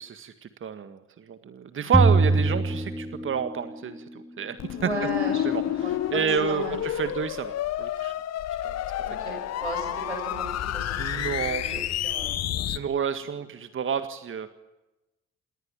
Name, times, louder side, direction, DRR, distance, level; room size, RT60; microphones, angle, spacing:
voice 1, 0.0-4.9 5.4-5.6 6.1-8.1 8.6-8.8 11.0-11.8 12.4-14.5, right 7 dB, 35° right, 10 dB, 1.8 m, -30 dB
sound 1, 1.9-3.7, right 3 dB, ahead, 2.6 m, -22 dB
sound 2, 4.6-12.8, left 12 dB, 50° left, 1.3 m, -30 dB
voice 2, 4.7-7.1 9.0-12.7, right 1 dB, 85° right, 3 dB, 6.2 m, -36 dB
28.5 x 21.5 x 8.9 m, 1.0 s
figure-of-eight pair, 45°, 33 cm